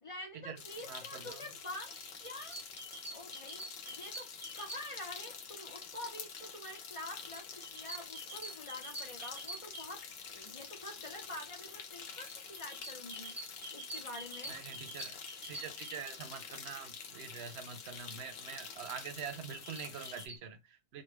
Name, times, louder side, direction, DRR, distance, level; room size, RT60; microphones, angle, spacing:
voice 1, 0.0-1.9 2.2-3.6 3.9-4.3 4.6-10.0 10.3-13.3 13.7-14.6, left 1 dB, 35° left, 0.7 m, -47 dB
sound 1, 0.6-20.3, left 6 dB, 70° left, 0.9 m, -47 dB
voice 2, 0.9-1.4 14.5-15.2 15.5-21.0, right 7 dB, 90° right, 0.9 m, -45 dB
sound 2, 2.0-5.2 7.3-10.4 12.3-16.0 19.2-20.4, right 1 dB, 15° right, 0.8 m, -47 dB
3.2 x 2.2 x 3.2 m
omnidirectional pair, 1.1 m